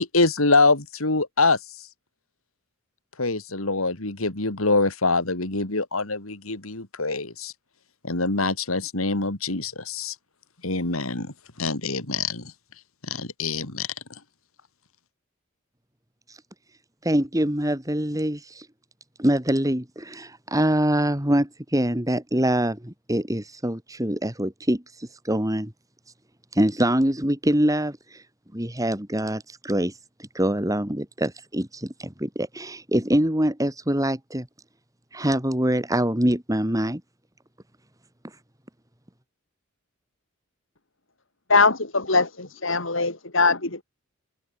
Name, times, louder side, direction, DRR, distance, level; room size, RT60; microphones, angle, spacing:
voice 1, 0.0-1.6 3.2-7.5 8.0-10.1 10.6-12.4 13.1-13.9, left 3 dB, 85° left, 3.3 m, -24 dB
voice 2, 17.0-18.7 19.2-25.7 26.1-26.2 26.5-28.3 28.5-34.5 35.1-37.0 38.2-38.4, right 1 dB, 15° right, 3.0 m, -24 dB
voice 3, 41.5-43.8, left 4 dB, 65° left, 4.1 m, -21 dB
open air
head